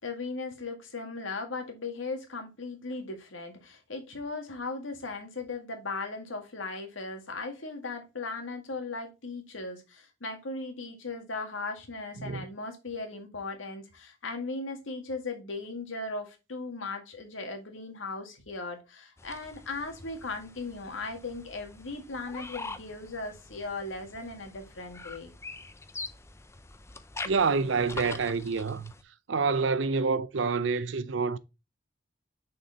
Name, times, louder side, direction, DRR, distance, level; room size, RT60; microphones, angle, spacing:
voice 1, 0.0-25.3, left 3 dB, 85° left, 1.9 m, -37 dB
sound 1, 19.2-29.0, left 3 dB, 15° left, 0.5 m, -44 dB
voice 2, 27.2-28.9 29.3-31.4, right 4 dB, 70° right, 0.6 m, -27 dB
6.4 x 4.4 x 4.0 m
head